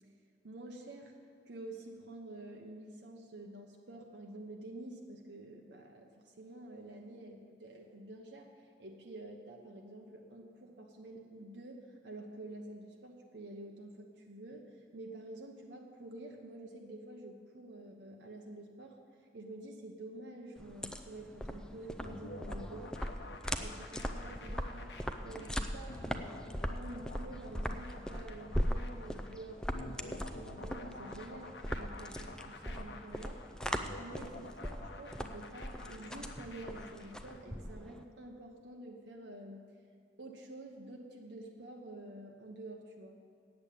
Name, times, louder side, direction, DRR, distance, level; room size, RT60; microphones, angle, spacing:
voice 1, 0.4-1.1 1.5-19.0 19.3-23.0 23.6-29.7 30.0-33.5 34.0-39.6 40.2-43.2, right 1 dB, 75° right, 1 dB, 1.0 m, -49 dB
sound 1, 20.6-38.0, equal, 5° left, 0.4 m, -39 dB
sound 2, 22.0-37.4, left 2 dB, 75° left, 1.0 m, -49 dB
8.8 x 7.7 x 8.4 m, 2.3 s
head